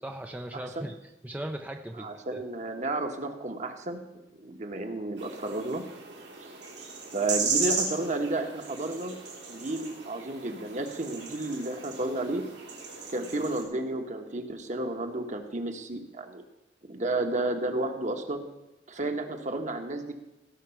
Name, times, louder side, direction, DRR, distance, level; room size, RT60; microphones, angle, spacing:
voice 1, 0.0-2.4, right 1 dB, 10° right, 4 dB, 0.5 m, -38 dB
voice 2, 0.5-0.9 2.0-4.0 4.3-5.8 7.1-9.2 9.5-12.4 13.1-16.4 16.9-18.4 18.9-20.1, right 2 dB, 45° right, 5 dB, 1.3 m, -32 dB
sound 1, 5.2-13.6, right 5 dB, 75° right, 3.1 m, -35 dB
17.0 x 6.0 x 5.9 m, 1.0 s
head